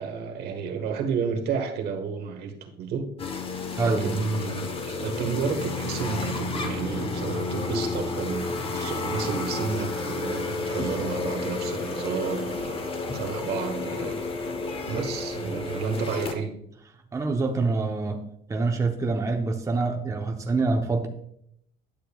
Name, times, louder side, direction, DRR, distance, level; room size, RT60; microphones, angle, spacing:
voice 1, 0.0-3.1 3.8-12.8 13.1-14.2 14.8-16.5, right 5 dB, 65° right, 4 dB, 1.3 m, -31 dB
sound 1, 3.2-16.3, left 3 dB, 30° left, 1.0 m, -31 dB
voice 2, 3.8-4.2 17.1-18.2 18.5-21.1, right 3 dB, 20° right, 3 dB, 0.7 m, -25 dB
10.5 x 6.7 x 2.3 m, 0.72 s
cardioid pair, 110°, 18 cm